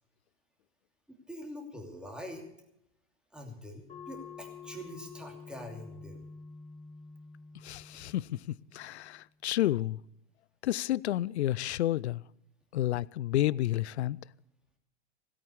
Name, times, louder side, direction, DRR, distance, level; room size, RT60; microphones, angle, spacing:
voice 1, 1.1-2.5 3.3-6.2 7.9-8.0, equal, ahead, 2.7 m, -44 dB
sound 1, 3.9-9.0, left 5 dB, 20° left, 1.4 m, -48 dB
voice 2, 7.6-10.0 10.6-12.2 12.7-14.2, left 14 dB, 65° left, 0.5 m, -30 dB
16.5 x 8.8 x 8.3 m
figure-of-eight pair, 100°, 35 cm